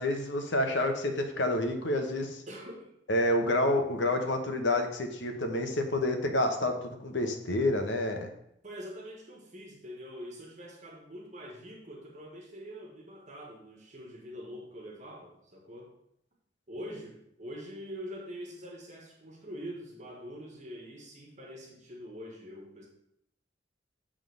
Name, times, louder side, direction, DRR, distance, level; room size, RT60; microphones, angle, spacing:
voice 1, 0.0-2.4 3.1-8.3, left 1 dB, 80° left, 5 dB, 1.0 m, -28 dB
voice 2, 2.5-2.9 8.6-16.0 16.7-22.9, equal, 40° right, 0 dB, 1.4 m, -44 dB
7.4 x 3.7 x 6.3 m, 0.75 s
head